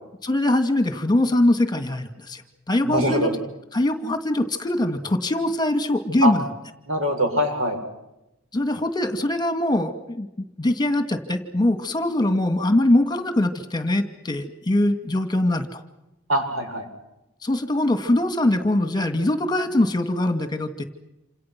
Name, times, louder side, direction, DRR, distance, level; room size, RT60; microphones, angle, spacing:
voice 1, 0.2-2.4 2.7-3.3 3.7-6.4 8.5-15.8 17.4-20.8, left 1 dB, 20° left, 8 dB, 2.3 m, -22 dB
voice 2, 2.8-3.3 6.2-6.3 6.9-7.8 16.3-16.9, equal, 85° right, 3 dB, 7.4 m, -22 dB
28.0 x 27.5 x 6.1 m, 0.92 s
head